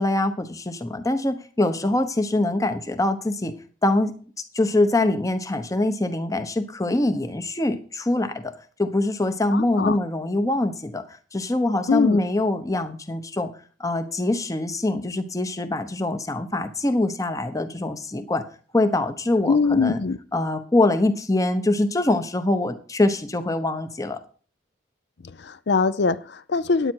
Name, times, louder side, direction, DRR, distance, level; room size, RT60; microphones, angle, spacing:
voice 1, 0.0-3.6 3.8-4.1 4.5-8.5 8.8-13.5 13.8-18.4 18.7-20.0 20.3-24.2, left 2 dB, 15° left, 9 dB, 0.8 m, -24 dB
voice 2, 9.5-10.0 11.9-12.2 19.5-20.2 25.2-26.9, left 4 dB, 55° left, 16 dB, 0.5 m, -22 dB
9.7 x 9.0 x 4.5 m, 0.40 s
head